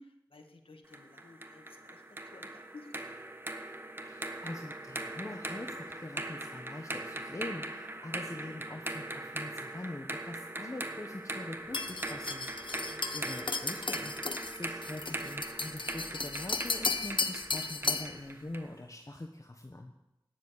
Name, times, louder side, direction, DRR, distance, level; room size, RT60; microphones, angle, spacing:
voice 1, 0.0-2.0 2.3-3.1 8.4-8.5 13.3-13.5 18.5-18.7, left 2 dB, 85° left, 5 dB, 1.9 m, -54 dB
sound 1, 0.9-18.7, right 1 dB, 25° right, 1.4 m, -41 dB
voice 2, 4.0-19.9, left 1 dB, 35° left, 3 dB, 1.4 m, -44 dB
sound 2, 11.7-18.2, left 3 dB, 65° left, 1.0 m, -35 dB
17.5 x 7.5 x 10.0 m, 0.91 s
wide cardioid pair, 65°, 9 cm